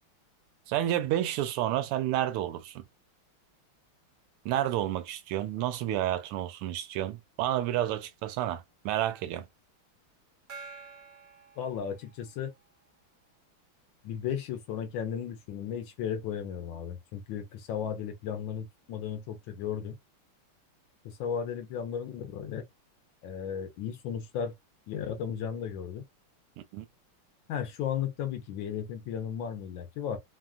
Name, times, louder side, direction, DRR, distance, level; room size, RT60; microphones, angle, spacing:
voice 1, 0.7-2.8 4.4-9.5 26.7-26.8, right 12 dB, 85° right, 1.5 m, -30 dB
Gong, 10.5-12.5, right 4 dB, 65° right, 0.6 m, -48 dB
voice 2, 11.6-12.5 14.0-20.0 21.0-22.6 23.2-24.5 24.9-26.1 27.5-30.2, left 8 dB, 75° left, 1.2 m, -35 dB
3.6 x 2.3 x 2.3 m
omnidirectional pair, 2.4 m